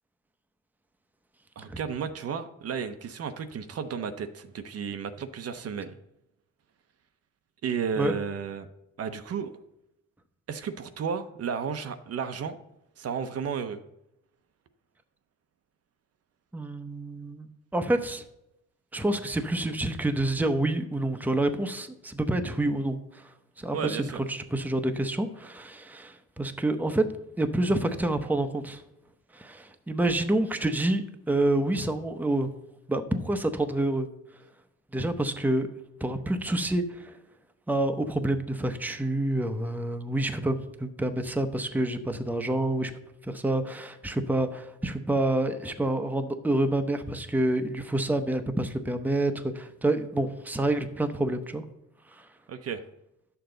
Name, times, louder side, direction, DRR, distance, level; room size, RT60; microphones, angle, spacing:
voice 1, 1.6-5.9 7.6-8.7 9.0-9.5 10.5-12.6 13.0-13.8 23.7-24.2 52.5-52.8, right 6 dB, 55° right, 9 dB, 0.7 m, -33 dB
voice 2, 16.5-18.2 18.9-27.1 27.4-28.8 29.3-31.0 31.3-32.5 32.9-34.1 34.9-35.7 36.0-37.2 37.7-42.9 43.2-51.6 52.1-52.3, right 1 dB, 5° right, 8 dB, 0.7 m, -28 dB
9.8 x 6.9 x 3.9 m, 0.84 s
cardioid pair, 90°, 30 cm